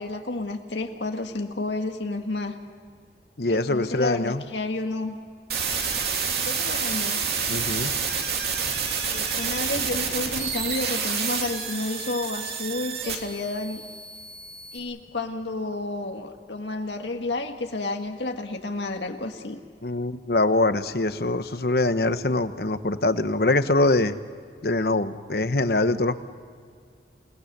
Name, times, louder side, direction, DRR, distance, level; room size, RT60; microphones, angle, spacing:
voice 1, 0.0-2.6 3.5-5.1 6.4-7.2 9.1-13.8 14.7-19.6, left 2 dB, 90° left, 4 dB, 1.7 m, -31 dB
voice 2, 3.4-4.4 7.5-7.9 19.8-24.1 24.6-26.2, left 2 dB, 60° left, 11 dB, 1.0 m, -23 dB
sound 1, 5.5-14.8, right 6 dB, 65° right, 2.9 m, -28 dB
29.0 x 18.5 x 6.7 m, 2.1 s
head